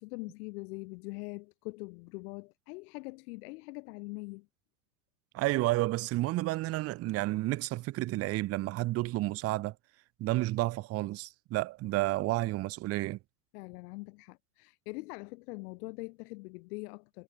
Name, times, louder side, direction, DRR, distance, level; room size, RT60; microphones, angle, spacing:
voice 1, 0.0-4.5 13.5-17.2, left 26 dB, 70° left, 7.3 m, -43 dB
voice 2, 5.3-9.7 10.2-13.2, right 18 dB, 30° right, 0.6 m, -31 dB
supercardioid pair, 120°, 47 cm